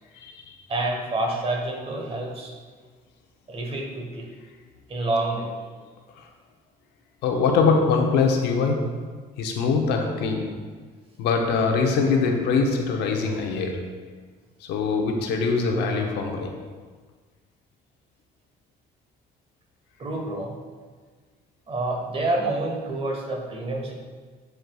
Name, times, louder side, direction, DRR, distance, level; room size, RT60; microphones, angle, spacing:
voice 1, 0.1-0.5 6.2-6.3 7.2-9.1 9.4-10.6 11.2-14.0 14.6-16.6, left 4 dB, 85° left, 3 dB, 0.8 m, -23 dB
voice 2, 0.7-2.5 3.5-4.3 4.9-5.5 20.0-20.6 21.7-23.9, right 2 dB, 35° right, 1 dB, 1.1 m, -28 dB
9.2 x 4.6 x 2.3 m, 1.5 s
cardioid pair, 110°, 17 cm